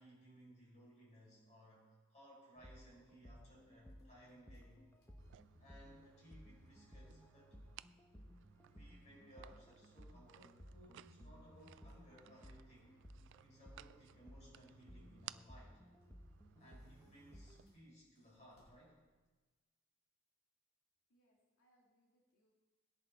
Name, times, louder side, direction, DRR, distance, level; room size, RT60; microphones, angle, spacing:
voice 1, 0.0-4.9 5.6-7.5 8.6-12.9 13.4-15.8 16.6-19.0, equal, 35° left, -4 dB, 5.7 m, -62 dB
sound 1, 2.6-17.7, equal, 10° left, 1.1 m, -59 dB
sound 2, 3.8-19.5, left 1 dB, 70° left, 3.9 m, -82 dB
sound 3, 5.2-17.7, right 12 dB, 60° right, 0.3 m, -61 dB
voice 2, 21.1-22.5, right 1 dB, 90° left, -2 dB, 2.2 m, -77 dB
18.5 x 10.5 x 4.4 m, 1.3 s
head